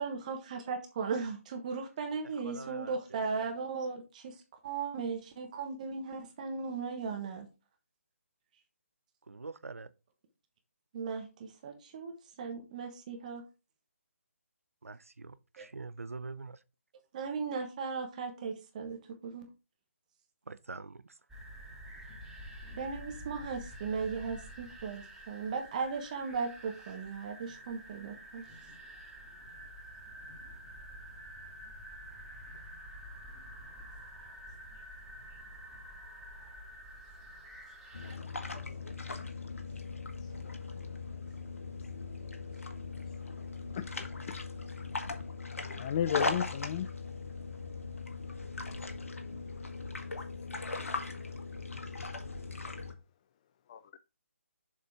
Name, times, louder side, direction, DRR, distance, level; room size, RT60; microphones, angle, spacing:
voice 1, 0.0-4.4 4.6-7.5 10.9-13.4 15.6-15.7 17.1-19.4 22.8-28.5, right 5 dB, 30° right, 1.3 m, -37 dB
voice 2, 2.4-3.0 9.3-9.9 14.8-16.6 20.5-21.2, right 3 dB, 75° right, 0.5 m, -44 dB
sound 1, 21.3-38.2, right 1 dB, 5° right, 1.7 m, -48 dB
sound 2, 37.9-52.9, left 3 dB, 70° left, 1.5 m, -39 dB
voice 3, 43.7-44.4 45.8-46.9 53.7-53.8, left 9 dB, 25° left, 0.4 m, -33 dB
7.2 x 4.2 x 4.8 m
figure-of-eight pair, 145°, 8 cm